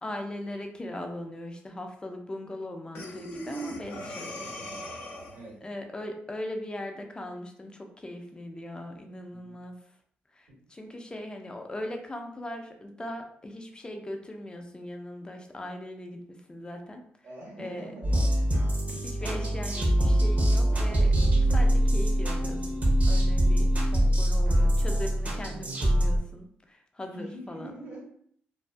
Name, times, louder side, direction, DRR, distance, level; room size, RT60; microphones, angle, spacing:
voice 1, 0.0-4.5 5.6-9.8 10.3-17.0 17.6-17.9 18.9-21.1 21.5-27.8, left 1 dB, 20° left, 4 dB, 0.5 m, -39 dB
Breathing, 2.9-5.5, equal, 85° left, 0.6 m, -38 dB
voice 2, 17.2-18.2 21.3-21.4 23.5-23.8 27.1-28.0, right 1 dB, 75° right, -4 dB, 1.3 m, -43 dB
sound 1, 18.0-26.2, right 1 dB, 40° right, 0.8 m, -23 dB
2.5 x 2.3 x 2.2 m, 0.64 s
supercardioid pair, 65°, 4 cm